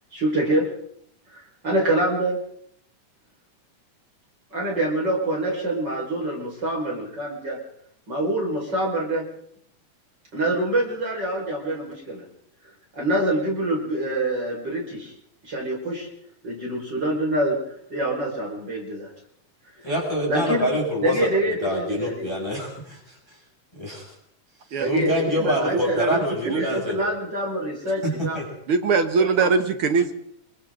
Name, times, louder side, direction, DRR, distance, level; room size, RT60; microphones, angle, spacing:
voice 1, 0.1-0.7 1.3-2.4 4.5-7.6 8.1-9.2 10.3-12.2 12.9-15.1 15.4-16.1 16.4-19.1 20.3-20.7 21.0-22.6 24.8-26.0 26.4-28.4 29.2-29.5, right 1 dB, 35° right, -2 dB, 5.7 m, -26 dB
voice 2, 19.8-23.2 23.7-24.1 24.8-27.0 28.0-28.5, equal, 5° left, -4 dB, 6.9 m, -26 dB
voice 3, 25.4-26.2 26.4-26.8 28.7-30.1, right 4 dB, 55° right, 8 dB, 1.8 m, -22 dB
28.5 x 23.5 x 3.9 m, 0.69 s
omnidirectional pair, 3.6 m